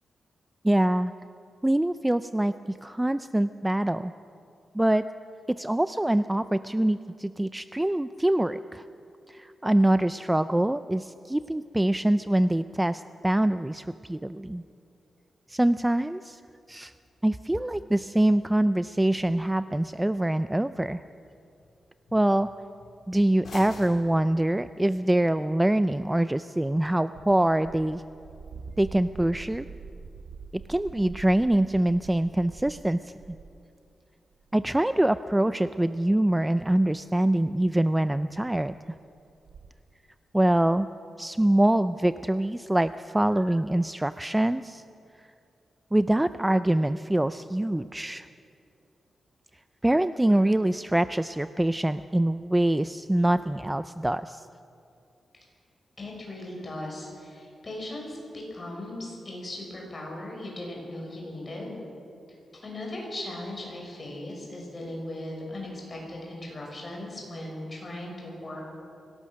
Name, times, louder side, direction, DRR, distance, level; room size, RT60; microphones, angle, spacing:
voice 1, 0.6-1.1 1.6-4.1 4.7-5.0 5.5-8.8 9.3-14.6 15.5-16.4 16.7-16.9 17.2-21.0 22.1-22.5 23.1-28.0 28.8-29.7 30.5-33.1 34.5-38.7 40.3-40.9 41.2-44.8 45.9-48.3 49.8-54.5, right 1 dB, 10° right, 12 dB, 0.4 m, -24 dB
sound 1, 17.0-25.0, left 2 dB, 60° left, 4.5 m, -52 dB
sound 2, 27.1-33.6 34.3-34.8 35.1-35.2 35.9-36.0 37.0-37.1 37.4-37.5 38.1-38.3 38.6-38.7 38.8-38.9 39.3-39.7, right 5 dB, 85° right, 0.9 m, -45 dB
voice 2, 56.0-61.8 62.5-68.6, left 1 dB, 30° left, -1 dB, 6.0 m, -38 dB
24.0 x 18.0 x 6.4 m, 2.6 s
wide cardioid pair, 130°, 0 cm